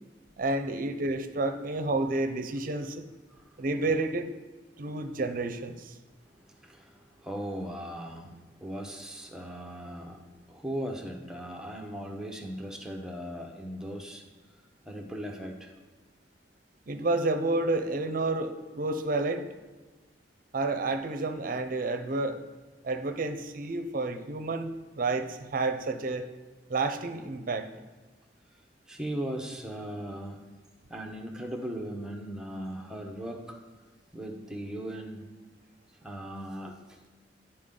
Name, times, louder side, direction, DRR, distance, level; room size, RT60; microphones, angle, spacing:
voice 1, 0.4-3.0 3.6-4.3 4.8-5.9 16.9-19.4 20.5-22.4 22.8-26.3 26.7-27.7, right 2 dB, 50° right, 8 dB, 0.6 m, -30 dB
voice 2, 3.3-3.6 6.3-14.2 14.9-15.7 28.9-30.5 30.9-33.6 34.1-35.2 36.0-37.0, right 1 dB, 5° right, 2 dB, 0.8 m, -38 dB
11.5 x 4.3 x 3.8 m, 1.3 s
head